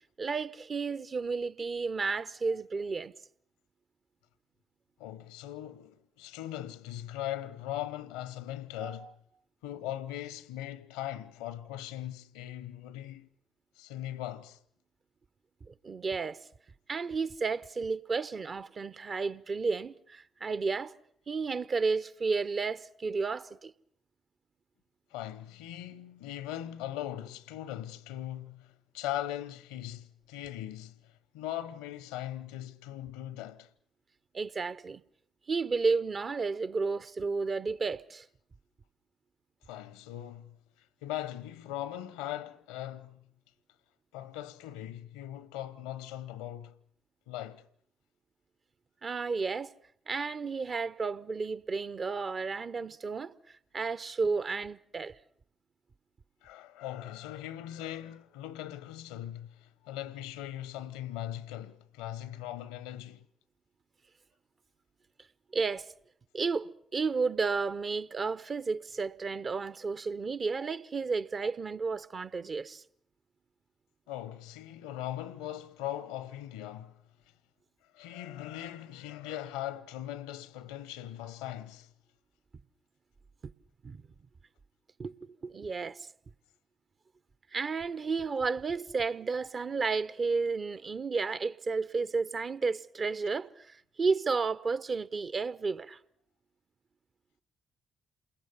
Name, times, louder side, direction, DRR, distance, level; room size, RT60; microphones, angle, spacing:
voice 1, 0.2-3.1 8.8-9.1 15.6-16.4 16.9-20.9 21.3-23.7 34.3-35.0 35.5-38.3 49.0-49.7 50.1-55.2 65.5-65.9 66.3-72.8 83.4-83.5 83.8-84.0 85.0-85.1 85.4-86.1 87.5-96.0, right 4 dB, 45° right, 1.0 m, -32 dB
voice 2, 5.0-9.2 9.6-13.3 13.8-14.6 25.1-33.7 39.7-40.6 41.0-43.3 44.1-46.8 47.3-47.7 56.4-63.3 74.1-77.0 77.9-81.9, left 12 dB, 80° left, 0.9 m, -40 dB
28.0 x 21.5 x 7.0 m
hypercardioid pair, 45°, 0 cm